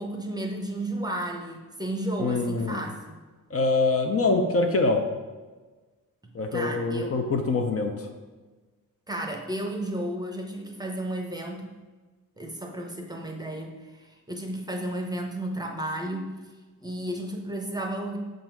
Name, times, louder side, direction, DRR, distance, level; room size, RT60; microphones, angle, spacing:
voice 1, 0.0-3.2 6.5-7.1 9.1-11.7 12.4-16.4 16.8-18.2, right 1 dB, 10° right, 2 dB, 0.7 m, -33 dB
voice 2, 2.2-2.8 3.5-5.0 6.3-8.1, left 3 dB, 45° left, 4 dB, 0.6 m, -24 dB
6.6 x 3.9 x 4.5 m, 1.3 s
cardioid pair, 110°, 33 cm